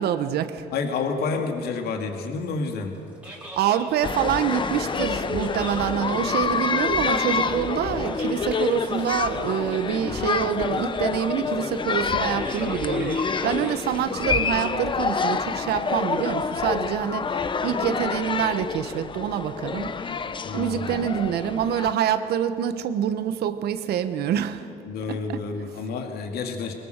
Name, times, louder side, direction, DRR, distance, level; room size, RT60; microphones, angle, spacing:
voice 1, 0.0-0.7 3.6-20.2 20.5-24.7 25.1-25.4, right 9 dB, 70° right, 11 dB, 1.3 m, -26 dB
voice 2, 0.7-3.0 20.4-21.1 24.8-26.7, left 4 dB, 70° left, 4 dB, 2.3 m, -29 dB
sound 1, 2.9-15.2, right 1 dB, 5° right, 4.4 m, -43 dB
sound 2, 4.0-21.9, left 5 dB, 30° left, 0.9 m, -27 dB
22.5 x 21.5 x 6.7 m, 2.7 s
cardioid pair, 110°, 17 cm